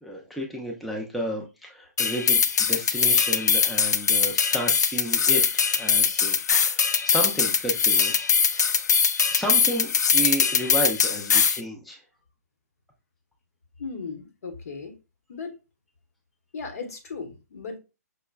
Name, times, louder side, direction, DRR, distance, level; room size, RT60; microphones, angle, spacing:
voice 1, 0.0-5.4 5.7-6.4 6.6-8.1 8.5-8.8 9.3-12.0, equal, ahead, 0.4 m, -32 dB
sound 1, 2.0-11.6, left 6 dB, 75° left, 0.4 m, -22 dB
voice 2, 13.8-15.0 15.3-15.6 16.5-17.8, left 4 dB, 60° left, 1.0 m, -36 dB
5.5 x 2.1 x 2.2 m
hypercardioid pair, 145°, 9 cm